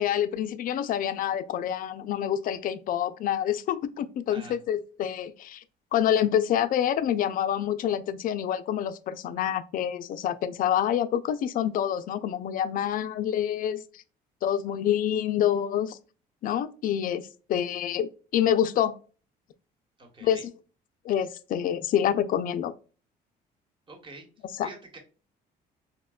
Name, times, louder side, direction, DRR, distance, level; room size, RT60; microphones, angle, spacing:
voice 1, 0.0-5.6 5.9-14.0 14.4-16.0 16.4-17.2 17.5-19.0 20.2-20.4 21.0-22.7 24.6-24.7, left 10 dB, 55° left, 0.4 m, -27 dB
voice 2, 20.0-20.5 23.9-25.0, right 3 dB, 30° right, 1.1 m, -46 dB
4.1 x 2.1 x 2.2 m
cardioid pair, 110°, 17 cm